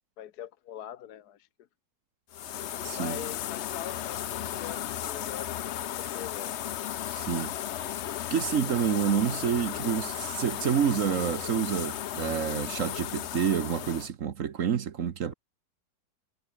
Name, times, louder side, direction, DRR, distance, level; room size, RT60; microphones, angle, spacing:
voice 1, 0.2-1.5 3.0-6.6, left 10 dB, 65° left, 1.3 m, -43 dB
sound 1, 2.3-14.1, left 11 dB, 85° left, 0.6 m, -35 dB
voice 2, 2.8-3.2 7.1-7.5 8.3-15.3, right 8 dB, 50° right, 1.2 m, -28 dB
omnidirectional pair, 2.0 m